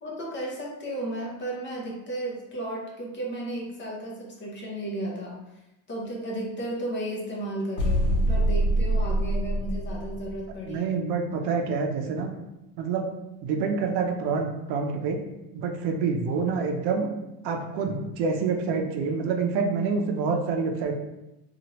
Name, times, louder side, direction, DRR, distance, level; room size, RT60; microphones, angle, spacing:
voice 1, 0.0-5.4 5.9-10.9, right 1 dB, 30° left, -2 dB, 0.7 m, -34 dB
sound 1, 7.8-10.5, right 1 dB, 75° left, 1.0 m, -24 dB
voice 2, 10.7-12.3 12.8-13.1 13.4-15.2 15.5-17.1 17.4-20.9, right 5 dB, 75° right, 3 dB, 0.6 m, -27 dB
2.8 x 2.4 x 2.9 m, 0.94 s
cardioid pair, 130°, 41 cm